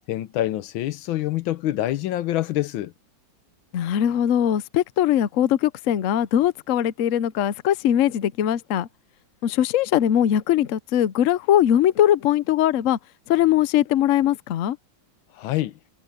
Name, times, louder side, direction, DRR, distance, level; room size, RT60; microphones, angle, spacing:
voice 1, 0.1-2.9 15.4-15.7, left 14 dB, 90° left, 1.5 m, -26 dB
voice 2, 3.7-8.9 9.4-13.0 13.3-14.8, left 11 dB, 65° left, 0.8 m, -21 dB
omnidirectional pair, 2.1 m